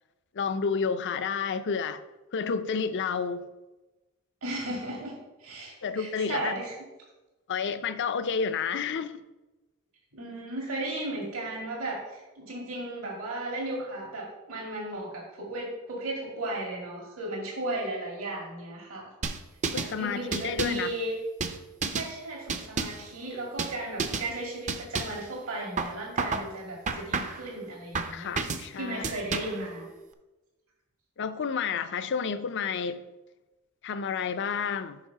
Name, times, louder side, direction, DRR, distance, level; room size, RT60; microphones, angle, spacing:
voice 1, 0.3-2.0 2.3-3.5 5.8-6.5 7.5-9.2 19.7-20.9 28.1-29.0 31.2-33.0 33.8-35.0, left 6 dB, 55° left, 0.5 m, -30 dB
voice 2, 4.4-6.7 10.1-19.1 19.7-21.2 21.8-28.3 28.7-29.9, right 1 dB, 70° right, 2.0 m, -35 dB
sound 1, 19.2-19.9 20.3-20.9 21.4-22.1 22.5-23.1 23.6-23.7 24.0-24.3 24.7-25.2 25.8-26.5 26.9-27.5 27.9-28.7 29.0-29.6, right 4 dB, 35° right, 0.5 m, -31 dB
7.3 x 4.7 x 5.6 m
head